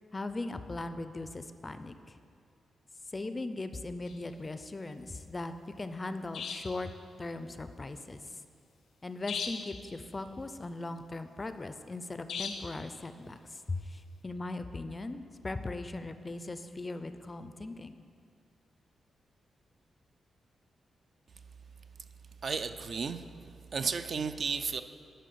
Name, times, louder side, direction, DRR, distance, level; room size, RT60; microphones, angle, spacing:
voice 1, 0.1-2.2 3.1-6.9 7.2-8.4 9.0-18.0, left 2 dB, 25° left, 10 dB, 0.4 m, -39 dB
sound 1, 4.1-4.2 6.3-6.8 9.3-9.8 12.3-12.8, left 5 dB, 90° left, 0.7 m, -38 dB
voice 2, 22.4-23.2 23.7-24.8, right 5 dB, 50° right, 10 dB, 0.4 m, -33 dB
10.0 x 5.3 x 6.8 m, 2.4 s
wide cardioid pair, 135°, 0 cm